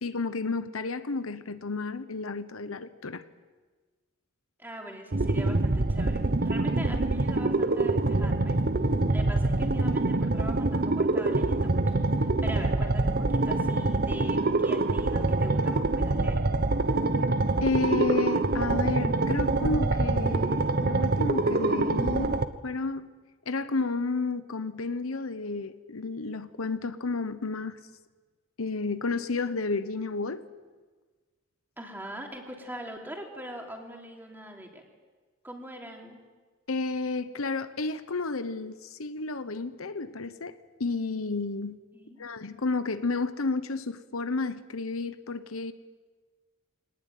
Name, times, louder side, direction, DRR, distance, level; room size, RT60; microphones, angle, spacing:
voice 1, 0.0-3.2 17.6-23.1 23.5-27.8 28.6-30.5 36.7-41.8 42.2-45.7, left 3 dB, 80° left, 1.0 m, -31 dB
voice 2, 4.6-8.6 9.1-11.8 12.2-16.4 31.8-34.8 35.4-36.2 41.9-42.2, equal, 10° right, 3.3 m, -42 dB
sound 1, 5.1-22.5, right 2 dB, 45° right, 1.0 m, -25 dB
23.5 x 19.0 x 9.3 m
head